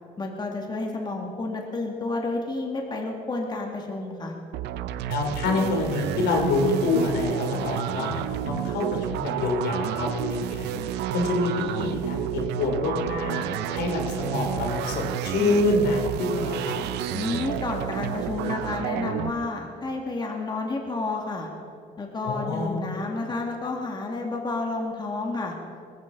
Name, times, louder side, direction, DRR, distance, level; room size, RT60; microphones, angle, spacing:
voice 1, 0.2-4.3 17.1-21.5 22.0-25.5, left 3 dB, 25° left, 1 dB, 2.1 m, -30 dB
sound 1, 4.5-19.3, right 10 dB, 85° right, 0.7 m, -30 dB
voice 2, 5.1-10.7 11.1-13.4 13.7-16.8 22.2-22.8, left 2 dB, 80° left, 2 dB, 3.0 m, -26 dB
20.0 x 15.5 x 3.9 m, 2.5 s
cardioid pair, 110°, 17 cm